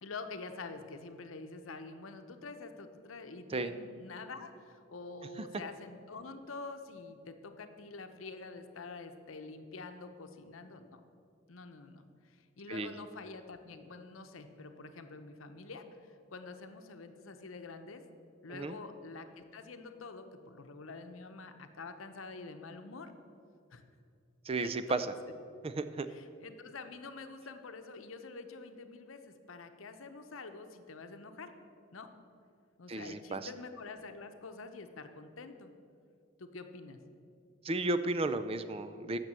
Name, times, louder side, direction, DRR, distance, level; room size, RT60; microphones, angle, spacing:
voice 1, 0.0-11.0 11.5-18.0 18.4-23.1 23.7-23.8 24.6-24.7 26.1-31.5 31.9-32.1 32.8-35.7 36.4-37.0, left 3 dB, 90° left, 8 dB, 0.8 m, -47 dB
voice 2, 24.5-25.1 25.6-26.1 32.9-33.5 37.6-39.2, right 2 dB, 30° right, 11 dB, 0.4 m, -33 dB
9.3 x 6.8 x 7.4 m, 2.4 s
head